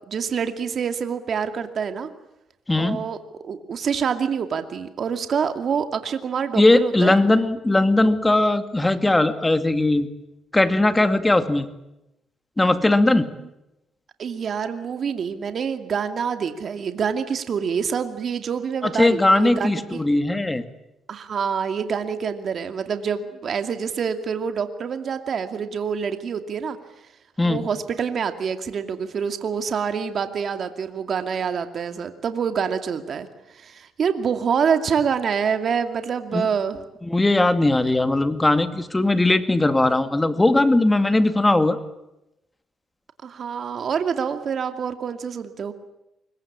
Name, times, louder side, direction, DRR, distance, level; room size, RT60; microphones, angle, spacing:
voice 1, 0.1-2.1 2.8-3.2 3.4-7.2 14.2-20.0 21.1-26.8 27.4-33.3 33.5-36.8 43.2-45.7, right 6 dB, 55° right, 8 dB, 2.5 m, -26 dB
voice 2, 2.7-3.0 6.6-10.1 10.5-11.7 12.6-13.3 18.8-20.6 27.4-27.6 36.3-36.5 37.0-41.8, left 2 dB, 15° left, 10 dB, 2.2 m, -19 dB
25.0 x 22.5 x 8.8 m, 0.90 s
cardioid pair, 90°, 0 cm